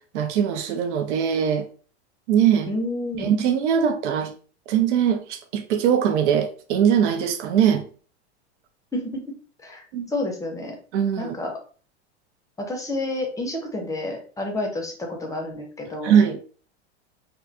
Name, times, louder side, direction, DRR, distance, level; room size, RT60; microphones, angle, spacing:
voice 1, 0.1-1.6 2.3-2.7 3.2-4.3 4.7-7.9 9.9-10.1 10.9-11.3 16.0-16.4, right 8 dB, 80° right, 0.5 m, -21 dB
voice 2, 2.7-3.4 8.9-9.2 9.6-10.8 11.2-11.5 12.6-16.2, left 1 dB, 10° left, 0.5 m, -30 dB
2.4 x 2.2 x 2.6 m
hypercardioid pair, 110°, 34 cm